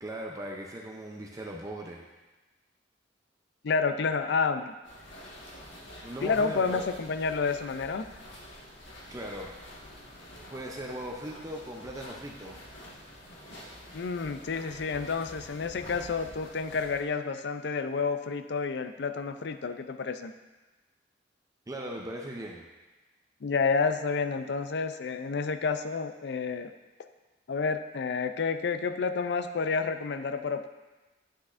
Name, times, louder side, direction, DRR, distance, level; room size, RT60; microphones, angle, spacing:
voice 1, 0.0-2.0 6.0-6.9 9.1-9.6 10.5-12.6 21.7-22.6, right 1 dB, 20° right, 0 dB, 0.6 m, -39 dB
voice 2, 3.6-4.7 6.2-8.1 13.9-20.3 23.4-26.7 27.5-30.7, left 5 dB, 65° left, 9 dB, 0.4 m, -30 dB
sound 1, 4.8-17.0, equal, 85° left, 1.6 m, -48 dB
9.9 x 6.0 x 2.5 m, 1.2 s
head